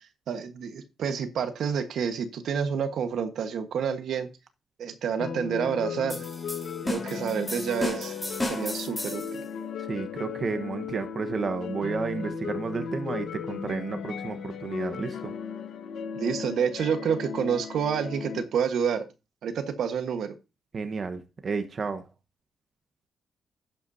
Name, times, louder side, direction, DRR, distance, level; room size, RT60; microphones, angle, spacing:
voice 1, 0.3-4.3 4.8-6.2 6.9-8.1 8.4-9.2 16.1-19.0 19.4-20.3, right 7 dB, 75° right, 1.3 m, -28 dB
sound 1, 5.2-18.4, left 6 dB, 75° left, 1.2 m, -36 dB
sound 2, 6.1-9.4, left 1 dB, 10° left, 3.8 m, -34 dB
voice 2, 9.9-15.3 20.7-22.0, right 4 dB, 40° right, 1.1 m, -32 dB
11.5 x 8.3 x 2.7 m
cardioid pair, 110°, 0 cm